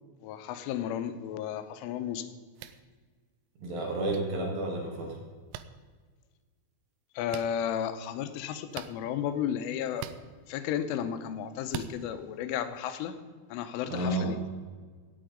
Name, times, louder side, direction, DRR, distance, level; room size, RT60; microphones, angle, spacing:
voice 1, 0.2-2.3 7.2-10.1 10.5-13.2 13.5-14.4, left 9 dB, 85° left, 10 dB, 3.3 m, -33 dB
sound 1, 2.6-2.8 4.1-4.2 5.5-5.7 7.3-7.5 8.7-8.9 10.0-10.2 11.7-11.9, right 11 dB, 90° right, 3.2 m, -39 dB
voice 2, 3.6-5.2 13.9-14.3, right 2 dB, 60° right, 0 dB, 3.3 m, -31 dB
16.5 x 8.6 x 5.1 m, 1.5 s
omnidirectional pair, 5.6 m